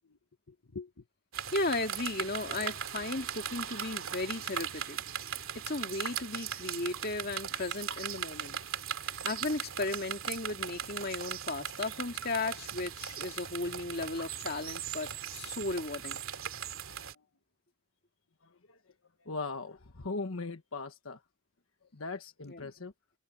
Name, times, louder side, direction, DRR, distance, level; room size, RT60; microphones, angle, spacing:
sound 1, 1.3-17.1, right 8 dB, 75° right, 2.5 m, -39 dB
voice 1, 1.5-5.0 5.5-8.6 9.2-16.2 22.5-22.7, left 2 dB, 45° left, 2.5 m, -35 dB
voice 2, 19.2-21.2 21.9-22.9, left 3 dB, 75° left, 1.3 m, -39 dB
head